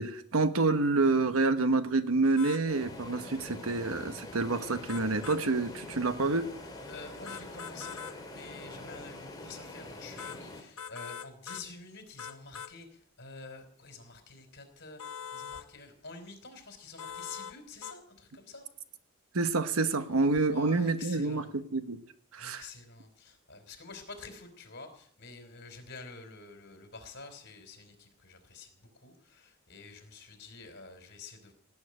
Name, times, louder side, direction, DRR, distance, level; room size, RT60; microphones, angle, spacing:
voice 1, 0.0-6.5 19.3-22.0 22.3-22.6, right 3 dB, 80° right, 10 dB, 1.1 m, -28 dB
sound 1, 2.4-2.6 4.9-5.4 7.3-8.2 10.2-10.4 10.8-11.7 12.2-12.7 15.0-15.7 17.0-17.6 17.8-18.0, left 7 dB, 75° left, 1.2 m, -42 dB
sound 2, 2.7-10.6, left 2 dB, 20° left, 3.0 m, -45 dB
voice 2, 6.9-18.7 20.4-21.5 22.4-31.5, left 4 dB, 50° left, 6 dB, 3.7 m, -48 dB
18.0 x 7.2 x 9.8 m, 0.62 s
head